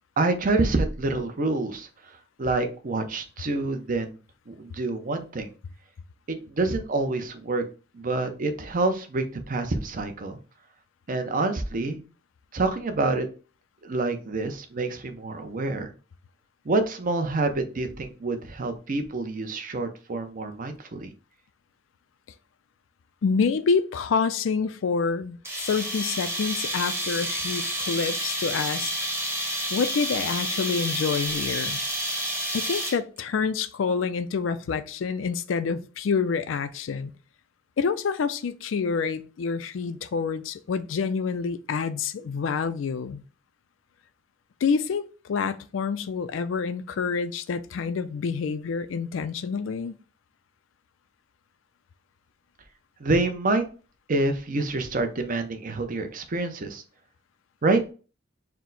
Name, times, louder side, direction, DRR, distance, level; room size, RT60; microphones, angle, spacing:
voice 1, 0.2-1.9 2.4-4.2 4.5-5.5 6.3-7.6 7.9-10.4 11.1-12.0 12.5-13.3 13.8-15.9 16.7-21.1 53.0-53.6 54.1-56.8 57.6-57.9, right 2 dB, 45° right, 0.6 m, -27 dB
voice 2, 23.2-25.4 25.7-28.9 29.7-31.8 32.5-37.1 37.8-43.2 44.6-49.9, left 5 dB, 80° left, 0.4 m, -27 dB
sound 1, 25.4-33.2, right 1 dB, 15° right, 0.9 m, -29 dB
4.4 x 2.1 x 3.9 m
head